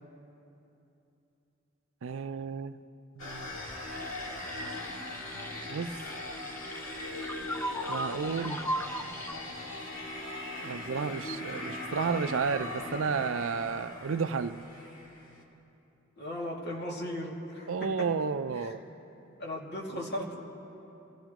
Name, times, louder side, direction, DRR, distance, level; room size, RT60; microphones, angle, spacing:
voice 1, 2.0-2.7 3.2-3.6 5.7-5.9 7.9-8.6 10.6-14.6 17.7-18.8, right 5 dB, 75° right, 12 dB, 0.5 m, -32 dB
sound 1, 3.2-15.4, left 2 dB, 75° left, 2.2 m, -40 dB
sound 2, 3.9-9.3, equal, 10° left, 0.5 m, -39 dB
voice 2, 16.2-18.1 18.5-18.8 19.4-20.4, left 1 dB, 55° left, -3 dB, 2.3 m, -37 dB
26.0 x 16.0 x 3.0 m, 2.9 s
head